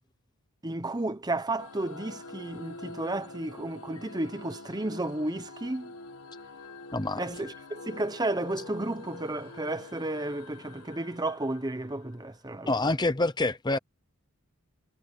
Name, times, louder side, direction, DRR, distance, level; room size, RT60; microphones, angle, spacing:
voice 1, 0.6-5.9 7.2-12.9, right 2 dB, 20° right, 0.9 m, -33 dB
sound 1, 1.6-12.5, left 3 dB, 85° left, 1.7 m, -46 dB
voice 2, 6.9-7.2 12.7-13.8, left 2 dB, 20° left, 0.8 m, -26 dB
head